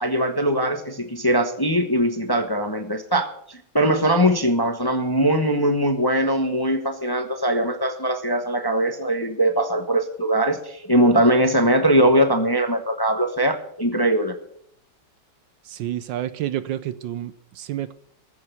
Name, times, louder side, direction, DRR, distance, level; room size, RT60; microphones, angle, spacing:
voice 1, 0.0-14.3, right 1 dB, 15° left, 6 dB, 0.9 m, -21 dB
voice 2, 15.6-17.9, right 12 dB, 70° right, 14 dB, 1.3 m, -29 dB
14.5 x 6.7 x 9.4 m, 0.67 s
omnidirectional pair, 2.2 m